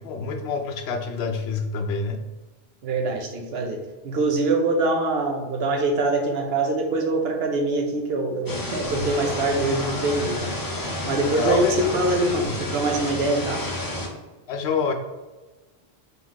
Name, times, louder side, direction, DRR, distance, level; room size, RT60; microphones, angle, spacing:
voice 1, 0.0-2.2 11.4-11.9 12.3-12.5 14.5-14.9, left 5 dB, 80° left, 6 dB, 0.8 m, -27 dB
voice 2, 2.8-13.6, right 2 dB, 70° right, 3 dB, 0.9 m, -24 dB
sound 1, 8.5-14.1, left 1 dB, 25° left, 0.5 m, -30 dB
3.9 x 3.4 x 3.0 m, 1.2 s
omnidirectional pair, 1.1 m